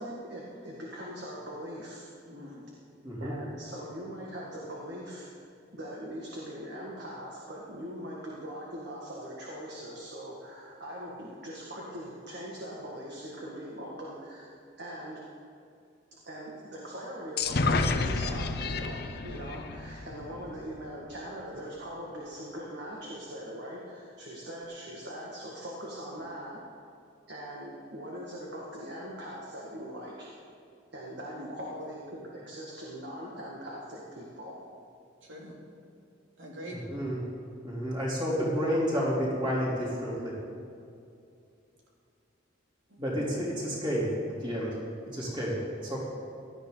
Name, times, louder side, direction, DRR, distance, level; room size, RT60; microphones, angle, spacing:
voice 1, 0.0-2.1 3.2-5.3 5.7-14.5 14.8-15.2 16.2-26.6 27.3-30.3 30.9-34.6, equal, 60° right, -4 dB, 2.0 m, -41 dB
voice 2, 2.3-2.7 31.3-31.5 35.2-35.6 36.4-36.8 42.9-43.2, equal, 85° right, -3 dB, 3.1 m, -44 dB
sound 1, 17.4-21.0, left 3 dB, 55° left, 0.7 m, -30 dB
voice 3, 36.7-37.2 37.6-40.3 43.0-44.1 44.4-44.7 45.1-46.0, equal, 25° right, -6 dB, 3.5 m, -30 dB
17.5 x 12.5 x 4.0 m, 2.5 s
head